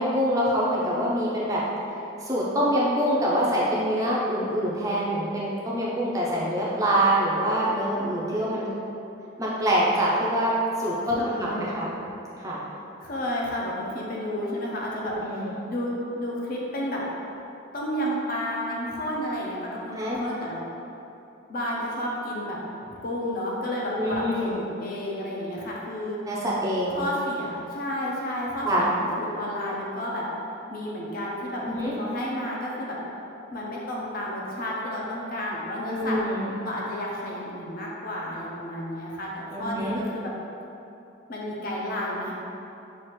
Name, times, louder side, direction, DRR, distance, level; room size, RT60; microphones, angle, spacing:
voice 1, 0.0-1.6 2.2-8.7 9.4-10.5 10.8-11.9 12.4-12.6 15.1-15.5 20.0-20.2 24.0-24.6 26.3-27.0 28.6-28.9 31.7-31.9 35.9-36.6 39.5-40.0, equal, 15° right, -6 dB, 0.5 m, -25 dB
voice 2, 11.1-11.8 13.0-17.0 17.7-20.6 21.5-22.6 23.0-26.2 26.9-30.3 30.7-33.0 33.5-36.2 36.6-40.3 41.3-42.3, left 1 dB, 45° left, -4 dB, 0.6 m, -31 dB
5.9 x 2.5 x 3.1 m, 2.9 s
head